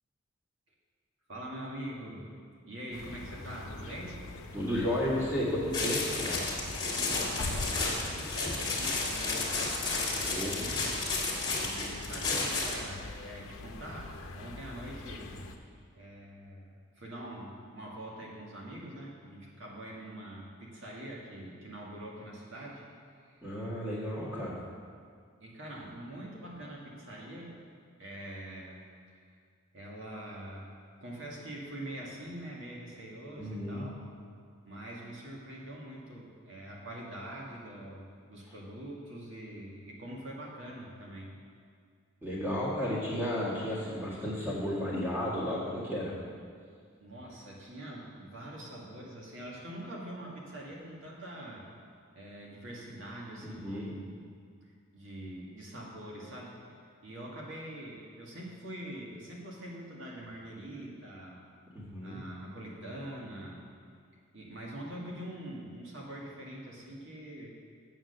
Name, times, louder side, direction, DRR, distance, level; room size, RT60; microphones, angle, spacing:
voice 1, 1.3-2.3 2.7-4.2 6.9-9.5 10.5-10.8 11.6-15.4 16.0-22.8 23.2-23.6 24.1-24.5 25.4-27.6 28.0-29.2 29.7-30.7 31.0-34.0 34.6-41.3 47.0-51.6 52.2-54.2 54.6-56.6 57.0-61.4 62.0-63.7 64.3-67.5, right 1 dB, 65° right, -3 dB, 1.7 m, -44 dB
sound 1, 2.9-15.6, left 2 dB, 90° left, 0.8 m, -43 dB
voice 2, 4.5-6.4 10.2-10.6 23.4-24.6 33.4-33.8 38.5-38.6 42.2-46.1 53.4-53.9 61.7-62.2, left 1 dB, 10° right, -7 dB, 1.8 m, -33 dB
sound 2, 5.7-12.9, left 3 dB, 20° left, 1.6 m, -32 dB
7.9 x 7.4 x 6.6 m, 2.1 s
head